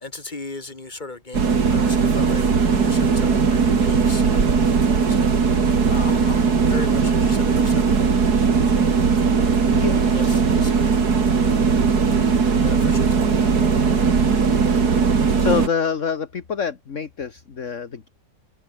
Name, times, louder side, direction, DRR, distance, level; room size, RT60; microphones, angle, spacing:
voice 1, 0.0-5.4 5.9-8.5 8.7-9.0 9.3-9.6 10.0-11.0 11.4-13.7, left 3 dB, 25° left, 2.9 m, -38 dB
sound 1, 1.3-15.7, right 5 dB, 65° right, 2.8 m, -18 dB
voice 2, 14.9-18.1, left 6 dB, 45° left, 1.9 m, -26 dB
omnidirectional pair, 1.8 m